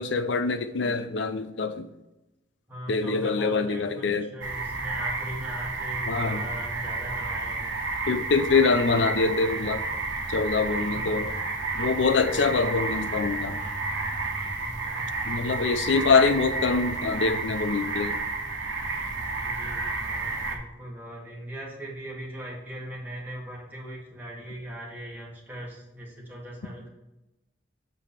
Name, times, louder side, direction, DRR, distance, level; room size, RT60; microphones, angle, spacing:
voice 1, 0.0-1.9 2.9-4.3 6.1-6.5 8.1-9.8 10.3-11.3 11.7-13.6 15.3-18.2, left 4 dB, 65° left, 0.6 m, -24 dB
voice 2, 2.7-7.7 10.8-11.1 14.6-15.1 19.4-26.9, right 1 dB, 10° right, 2.1 m, -39 dB
sound 1, 4.4-20.6, right 3 dB, 85° right, 1.2 m, -31 dB
7.0 x 4.9 x 4.3 m
head